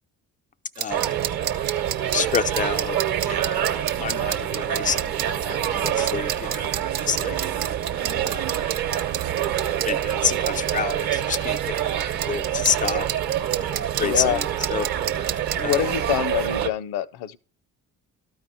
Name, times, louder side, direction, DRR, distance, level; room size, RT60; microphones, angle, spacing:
sound 1, 0.7-15.8, right 11 dB, 75° right, 0.7 m, -30 dB
voice 1, 0.8-1.1 2.1-3.0 3.3-7.4 8.2-8.5 9.9-13.1 13.6-14.4 14.7-14.9 15.6-15.8, left 7 dB, 20° left, 0.3 m, -29 dB
sound 2, 0.9-16.7, right 10 dB, 50° right, 1.0 m, -26 dB
voice 2, 14.0-14.4 15.6-17.4, left 11 dB, 60° left, 0.7 m, -25 dB
13.5 x 4.7 x 2.8 m
figure-of-eight pair, 45°, 45 cm